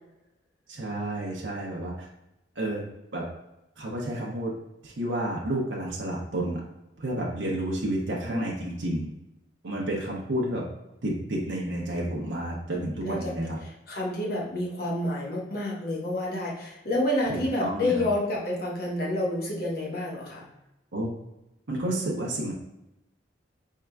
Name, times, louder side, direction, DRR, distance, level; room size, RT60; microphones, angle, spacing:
voice 1, 0.7-1.9 2.6-2.8 3.1-3.2 3.8-4.5 4.8-6.6 7.0-9.1 9.6-10.6 11.0-13.6 17.3-18.1 20.9-21.1 21.7-22.5, right 1 dB, 70° right, -2 dB, 0.7 m, -30 dB
voice 2, 13.0-13.3 13.6-20.4, left 1 dB, 55° left, -3 dB, 1.0 m, -29 dB
4.5 x 3.7 x 2.2 m, 0.91 s
head